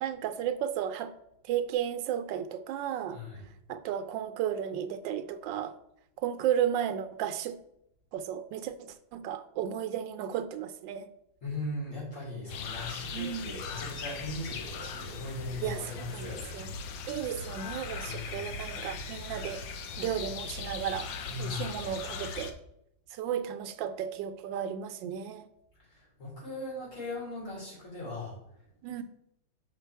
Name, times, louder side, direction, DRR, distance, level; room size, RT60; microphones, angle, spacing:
voice 1, 0.0-1.1 1.4-3.2 3.7-5.7 6.2-7.6 8.1-11.1 13.1-13.6 15.6-16.7 17.1-19.6 20.0-21.1 21.4-22.6 23.1-25.5 28.8-29.0, right 9 dB, 90° right, 10 dB, 1.3 m, -34 dB
voice 2, 3.1-3.4 11.4-16.7 18.0-18.4 21.3-21.8 25.9-28.4, left 2 dB, 45° left, -5 dB, 3.5 m, -39 dB
sound 1, 12.5-22.5, left 5 dB, 85° left, 1.4 m, -39 dB
5.8 x 5.2 x 4.5 m, 0.79 s
omnidirectional pair, 1.9 m